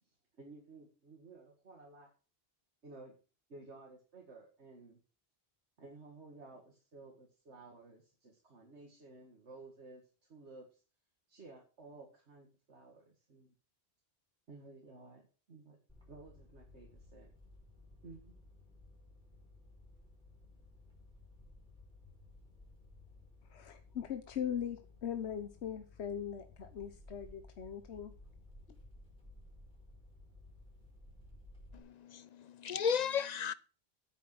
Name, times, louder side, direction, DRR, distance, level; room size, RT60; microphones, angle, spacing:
voice 1, 0.0-2.1 2.8-3.2 3.5-5.0 5.8-10.8 11.3-13.5 14.5-15.8 16.1-17.3 18.0-18.4, right 3 dB, 85° right, 2.4 m, -55 dB
sound 1, 15.9-31.8, left 2 dB, 5° left, 5.4 m, -57 dB
voice 2, 23.5-28.1, left 8 dB, 80° left, 1.2 m, -40 dB
voice 3, 31.7-33.5, left 7 dB, 45° left, 0.6 m, -35 dB
9.5 x 8.6 x 6.1 m
omnidirectional pair, 1.1 m